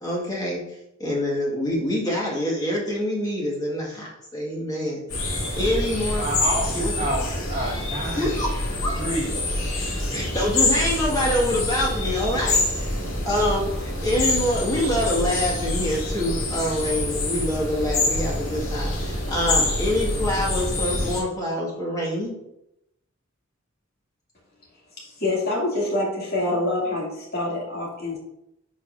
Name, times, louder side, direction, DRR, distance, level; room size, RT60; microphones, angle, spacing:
voice 1, 0.0-5.0 5.5-6.3 6.8-6.9 8.2-8.5 8.8-9.0 10.1-13.0 13.2-22.4, left 1 dB, 20° left, 1.8 m, -26 dB
sound 1, 5.1-21.2, left 2 dB, 75° left, 2.1 m, -26 dB
voice 2, 6.2-8.3 8.7-9.3, right 1 dB, 30° right, 1.9 m, -29 dB
voice 3, 25.0-28.2, left 2 dB, 50° left, 2.5 m, -26 dB
11.0 x 4.9 x 2.6 m
head